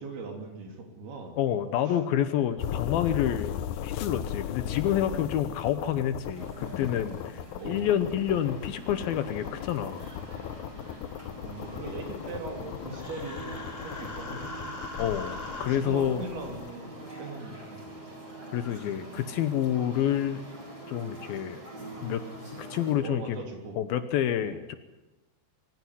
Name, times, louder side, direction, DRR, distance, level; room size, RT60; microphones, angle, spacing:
voice 1, 0.0-1.4 1.9-2.0 7.6-7.9 11.4-14.8 15.7-16.9 17.2-18.1 23.0-23.8 24.4-24.6, right 3 dB, 65° right, 4 dB, 5.1 m, -40 dB
voice 2, 1.4-10.0 15.0-16.3 18.5-20.4 20.9-21.6 22.0-22.2 22.6-23.4 23.8-24.8, left 10 dB, 75° left, 11 dB, 2.5 m, -28 dB
sound 1, 2.6-16.7, left 10 dB, 90° left, 1.7 m, -38 dB
sound 2, 6.3-22.9, right 1 dB, 20° right, 7.5 m, -44 dB
Human voice, 12.9-15.7, left 2 dB, 20° left, 1.9 m, -40 dB
23.5 x 15.5 x 9.9 m, 1.1 s
omnidirectional pair, 4.8 m